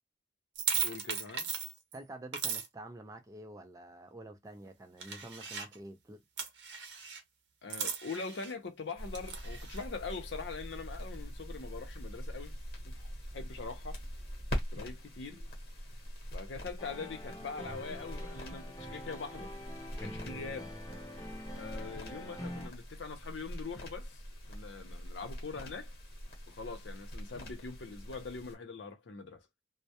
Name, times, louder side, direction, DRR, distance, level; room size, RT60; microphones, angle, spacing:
sound 1, 0.5-2.0 2.3-2.7 5.0-5.8 6.4-7.2 7.7-8.5 9.1-9.8, right 7 dB, 70° right, 0.6 m, -36 dB
voice 1, 0.8-1.5 7.6-12.6 12.8-14.0 14.7-15.4 16.3-19.5 20.0-20.7 21.6-24.2 24.5-25.9 26.5-29.4, left 4 dB, 75° left, 0.6 m, -43 dB
voice 2, 1.9-6.2, right 1 dB, 20° right, 0.3 m, -48 dB
sound 2, 9.0-28.5, equal, 50° left, 1.0 m, -43 dB
sound 3, 16.8-22.7, equal, 20° left, 0.7 m, -45 dB
2.2 x 2.0 x 2.7 m
head